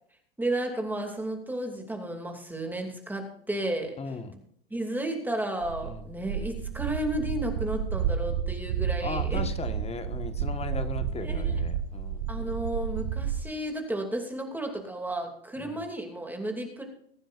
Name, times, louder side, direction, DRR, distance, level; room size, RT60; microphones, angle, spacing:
voice 1, 0.4-4.0 4.7-9.4 11.2-11.6 12.3-16.8, right 1 dB, 5° right, 2 dB, 2.6 m, -33 dB
voice 2, 4.0-4.3 5.8-6.0 9.0-12.3 15.6-15.8, left 4 dB, 20° left, 9 dB, 1.5 m, -37 dB
sound 1, 5.6-13.4, right 7 dB, 80° right, 1.4 m, -31 dB
22.0 x 9.9 x 2.5 m, 0.68 s
hypercardioid pair, 100°, 31 cm